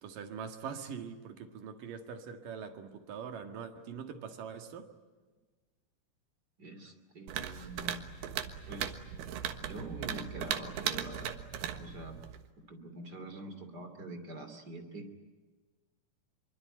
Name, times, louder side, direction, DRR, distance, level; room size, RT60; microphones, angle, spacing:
voice 1, 0.0-4.9, right 7 dB, 65° right, 6 dB, 3.3 m, -43 dB
voice 2, 6.6-8.4 8.7-8.9 9.6-11.4 11.7-12.2 12.6-15.1, right 2 dB, 30° right, 7 dB, 2.8 m, -45 dB
sound 1, 7.3-12.5, right 9 dB, 85° right, 3.5 m, -38 dB
25.0 x 24.0 x 9.0 m, 1.3 s
omnidirectional pair, 4.5 m